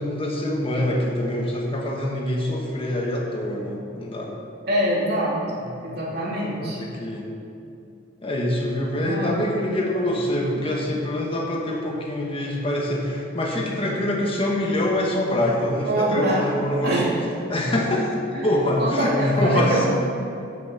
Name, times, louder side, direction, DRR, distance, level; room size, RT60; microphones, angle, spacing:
voice 1, 0.0-4.3 5.8-6.1 6.4-7.3 8.2-17.2 17.5-18.1 18.4-19.9, left 1 dB, 30° left, -1 dB, 1.5 m, -25 dB
voice 2, 4.7-5.4 5.8-6.8 9.0-9.4 10.5-10.7 15.9-17.2 18.3-18.4 18.8-19.9, right 1 dB, 55° right, -5 dB, 2.9 m, -24 dB
15.0 x 6.3 x 5.8 m, 2.7 s
head